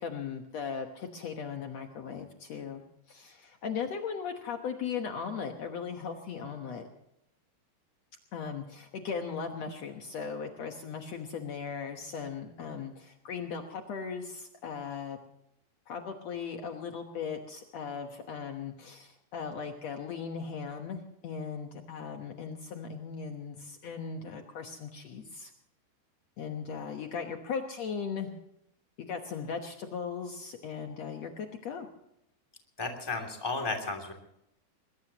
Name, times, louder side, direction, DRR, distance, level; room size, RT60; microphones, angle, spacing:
voice 1, 0.0-2.8 3.1-6.9 8.3-15.2 15.9-25.5 26.4-28.3 29.1-31.9, left 6 dB, 90° left, 4 dB, 1.4 m, -38 dB
voice 2, 32.8-34.1, left 3 dB, 5° left, 2 dB, 2.0 m, -33 dB
22.0 x 21.5 x 3.0 m, 0.78 s
omnidirectional pair, 4.9 m